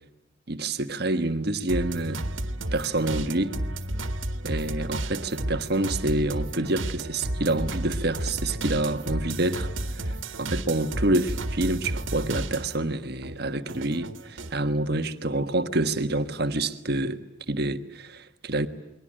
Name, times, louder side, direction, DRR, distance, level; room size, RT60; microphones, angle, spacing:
voice 1, 0.5-2.2 2.7-3.5 4.4-17.2 17.5-18.7, right 2 dB, 55° right, 1.4 m, -27 dB
sound 1, 1.7-12.9 13.2-14.6, right 1 dB, 90° right, 1.7 m, -32 dB
29.5 x 22.0 x 8.8 m
head